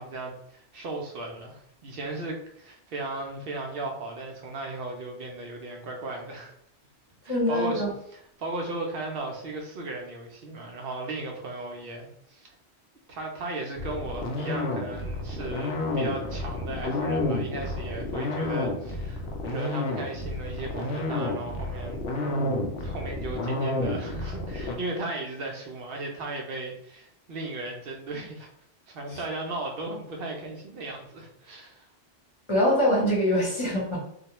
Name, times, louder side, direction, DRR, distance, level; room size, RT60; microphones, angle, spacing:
voice 1, 0.0-6.5 7.2-7.8 8.1-12.5 13.1-22.0 22.8-28.5 28.9-31.9, right 2 dB, 65° right, 1 dB, 0.7 m, -36 dB
voice 2, 7.3-7.9 29.1-29.2 32.5-34.0, equal, 30° left, -5 dB, 0.8 m, -24 dB
sound 1, 13.8-24.8, left 2 dB, 75° left, 0.8 m, -30 dB
2.3 x 2.1 x 2.9 m, 0.68 s
omnidirectional pair, 1.1 m